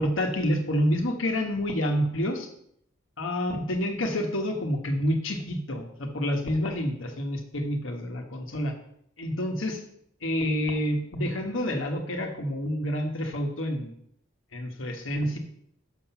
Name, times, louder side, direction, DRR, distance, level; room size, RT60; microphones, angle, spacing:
voice 1, 0.0-2.5 3.2-8.7 9.2-9.8 10.2-13.9 14.5-15.4, equal, 70° left, 3 dB, 1.2 m, -28 dB
6.5 x 5.8 x 5.7 m, 0.70 s
head